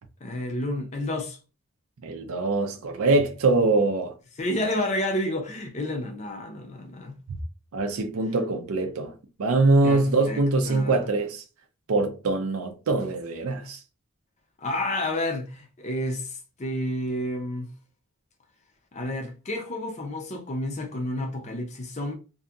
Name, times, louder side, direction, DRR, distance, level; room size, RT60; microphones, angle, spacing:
voice 1, 0.2-1.4 4.4-7.1 9.8-11.0 14.6-17.7 18.9-22.1, left 1 dB, 30° left, 0.5 m, -30 dB
voice 2, 2.0-4.1 7.7-9.1 9.4-11.4 11.9-13.8, right 2 dB, 75° right, 0.5 m, -23 dB
2.7 x 2.6 x 2.4 m
head